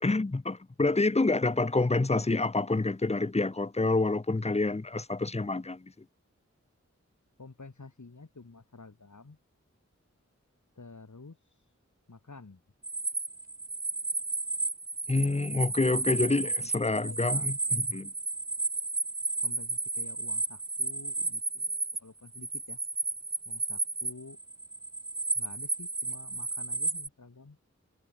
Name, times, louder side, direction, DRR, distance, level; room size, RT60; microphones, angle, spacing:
voice 1, 0.0-5.9 15.1-18.1, left 3 dB, 20° left, 0.7 m, -27 dB
voice 2, 7.4-9.4 10.8-11.4 12.1-12.6 16.4-16.7 17.0-17.5 19.4-22.8 23.5-24.4 25.4-27.6, left 3 dB, 80° left, 3.9 m, -50 dB
sound 1, 12.8-22.0 22.3-27.1, right 3 dB, 30° right, 0.8 m, -33 dB
wide cardioid pair, 45°, 29 cm